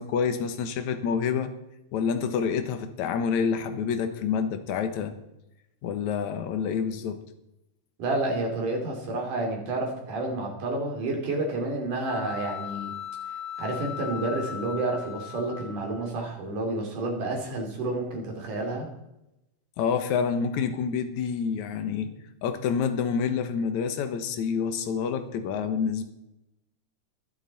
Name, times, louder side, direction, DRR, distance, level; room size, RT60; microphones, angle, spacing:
voice 1, 0.0-1.5 1.9-5.1 5.8-7.2 19.8-22.1 22.4-26.0, left 6 dB, 70° left, 8 dB, 2.4 m, -28 dB
voice 2, 8.0-12.9 13.6-18.9, right 2 dB, 75° right, 1 dB, 4.5 m, -30 dB
sound 1, 12.0-16.1, left 8 dB, 85° left, 3.7 m, -38 dB
23.5 x 8.0 x 4.2 m, 0.88 s
omnidirectional pair, 3.7 m